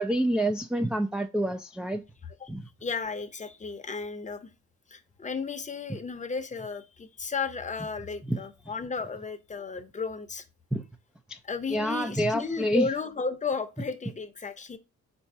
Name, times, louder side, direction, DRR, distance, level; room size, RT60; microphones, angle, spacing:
voice 1, 0.0-2.0 2.5-2.7 8.3-8.4 10.7-10.8 11.3-11.4 11.7-12.9, right 1 dB, 5° right, 0.3 m, -27 dB
voice 2, 2.8-4.5 4.9-10.4 11.4-14.8, left 4 dB, 25° left, 0.7 m, -34 dB
4.5 x 2.7 x 4.2 m
cardioid pair, 90°, 30 cm